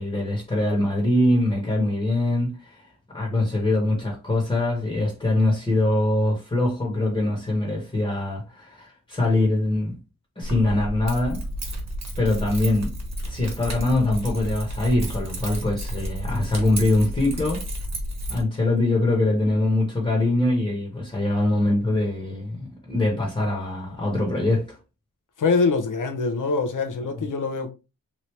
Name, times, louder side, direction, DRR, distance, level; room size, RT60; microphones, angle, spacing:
voice 1, 0.0-2.8 3.1-9.9 10.4-11.4 12.2-13.0 13.3-17.6 18.3-24.8, left 2 dB, 15° left, 1.1 m, -23 dB
Keys jangling, 10.4-18.4, equal, 50° right, 1.2 m, -31 dB
voice 2, 25.4-27.7, left 4 dB, 60° left, 0.7 m, -24 dB
3.1 x 2.7 x 3.1 m
wide cardioid pair, 105°, 35 cm